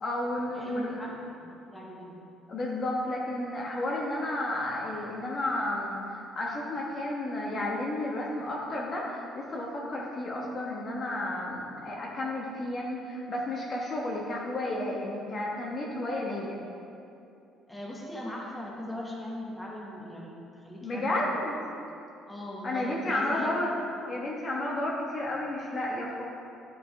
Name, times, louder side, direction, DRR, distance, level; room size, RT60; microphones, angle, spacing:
voice 1, 0.0-1.0 2.5-16.6 20.8-21.5 22.6-23.7 24.1-26.2, left 1 dB, 35° left, -3 dB, 1.1 m, -32 dB
voice 2, 0.5-2.1 17.7-21.3 21.8-21.9 22.3-23.5 23.9-24.0, left 1 dB, 5° left, -4 dB, 1.3 m, -40 dB
11.0 x 5.2 x 3.3 m, 2.7 s
cardioid pair, 125°, 0 cm